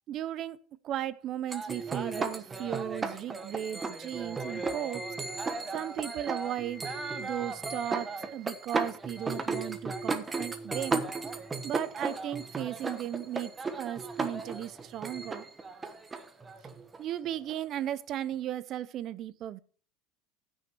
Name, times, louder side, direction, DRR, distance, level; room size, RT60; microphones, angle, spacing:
voice 1, 0.1-0.6 0.8-5.0 5.7-6.8 7.2-11.0 11.6-13.5 13.8-15.5 17.0-19.6, right 11 dB, 40° right, 0.7 m, -36 dB
sound 1, 1.5-17.8, right 3 dB, 15° right, 1.1 m, -35 dB
15.0 x 6.4 x 4.5 m
supercardioid pair, 145°, 0 cm